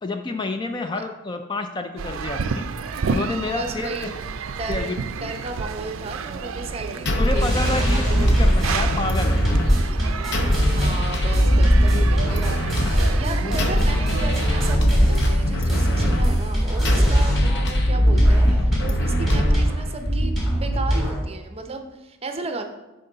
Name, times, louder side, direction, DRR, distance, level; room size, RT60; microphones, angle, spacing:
voice 1, 0.0-2.6 3.1-4.1 4.7-5.0 7.2-9.4 13.4-13.6, left 3 dB, 20° left, 6 dB, 0.3 m, -28 dB
sound 1, 2.0-14.8, right 5 dB, 80° right, 0.4 m, -31 dB
voice 2, 3.6-4.1 4.6-8.4 10.5-22.6, right 2 dB, 30° right, 5 dB, 0.6 m, -34 dB
sound 2, 7.1-20.1, equal, 55° left, 0.8 m, -21 dB
sound 3, 7.4-17.6 17.9-21.2, equal, ahead, 2.0 m, -23 dB
9.9 x 3.8 x 3.9 m, 1.0 s
head